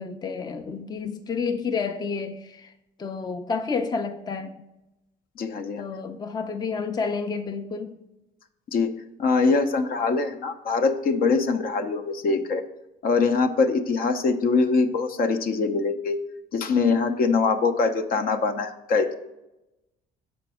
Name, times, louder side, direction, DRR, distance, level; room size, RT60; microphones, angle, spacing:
voice 1, 0.0-2.7 3.0-4.6 5.8-8.0, left 5 dB, 25° left, 0.5 m, -30 dB
voice 2, 5.4-5.8 8.7-12.6 13.0-16.2 16.5-19.1, left 4 dB, 60° left, 0.7 m, -23 dB
6.6 x 5.1 x 4.8 m
cardioid pair, 110°, 17 cm